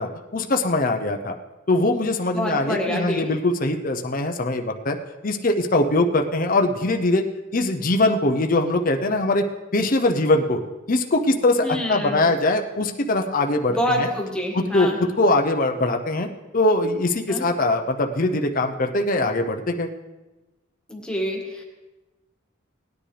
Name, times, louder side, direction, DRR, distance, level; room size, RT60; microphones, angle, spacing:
voice 1, 0.0-1.3 1.7-5.0 5.2-7.2 7.5-9.4 9.7-10.6 10.9-14.1 14.5-16.3 16.5-19.9, left 2 dB, 45° left, 4 dB, 0.7 m, -22 dB
voice 2, 2.2-3.3 11.6-12.2 13.7-15.0 17.3-17.4 20.9-21.6, equal, 5° left, -1 dB, 1.8 m, -26 dB
18.5 x 10.0 x 3.4 m, 1.1 s
head